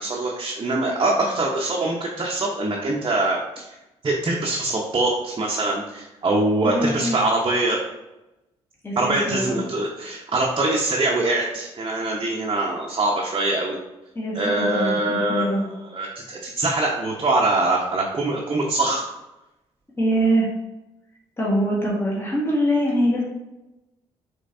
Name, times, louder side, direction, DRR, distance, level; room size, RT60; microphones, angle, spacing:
voice 1, 0.0-3.7 4.0-7.8 9.0-13.8 14.3-19.0, right 2 dB, 35° right, -3 dB, 0.8 m, -23 dB
voice 2, 6.6-7.2 8.8-9.6 14.1-15.7 20.0-20.5 21.4-23.2, equal, 20° left, -4 dB, 1.4 m, -23 dB
5.2 x 3.2 x 2.6 m, 0.95 s
hypercardioid pair, 50°, 13 cm